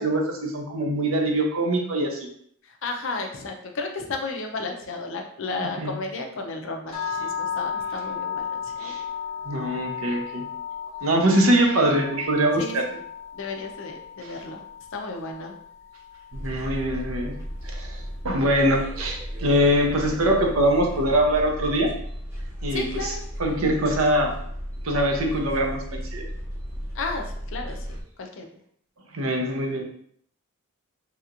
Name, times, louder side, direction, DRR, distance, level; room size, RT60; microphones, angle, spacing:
voice 1, 0.0-2.3 5.6-5.9 8.8-9.0 9.4-10.4 11.0-12.8 16.3-17.3 17.6-18.0 18.2-21.9 22.6-23.1 23.4-24.3 24.8-26.2 29.1-29.8, right 1 dB, 75° right, 1 dB, 0.7 m, -23 dB
voice 2, 2.6-8.9 11.3-11.5 12.5-13.0 13.3-14.6 14.9-15.5 22.7-23.2 26.9-28.5, left 3 dB, 60° left, 4 dB, 0.5 m, -33 dB
sound 1, 6.9-17.0, left 7 dB, 30° left, 0.8 m, -35 dB
sound 2, 16.3-28.0, equal, 15° right, 0.8 m, -34 dB
3.2 x 2.9 x 2.5 m, 0.65 s
head